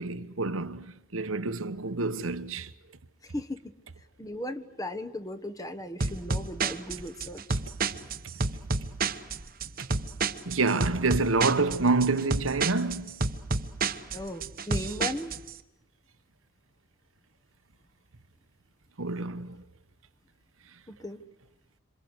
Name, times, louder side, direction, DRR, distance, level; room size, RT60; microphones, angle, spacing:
voice 1, 0.0-2.7 10.5-13.2 19.0-19.6, right 3 dB, 75° right, 1.2 m, -27 dB
voice 2, 4.2-7.6 14.1-15.4 20.9-21.2, left 1 dB, 15° left, 1.2 m, -37 dB
sound 1, 6.0-15.5, right 4 dB, 45° right, 1.2 m, -30 dB
27.0 x 26.5 x 8.1 m
head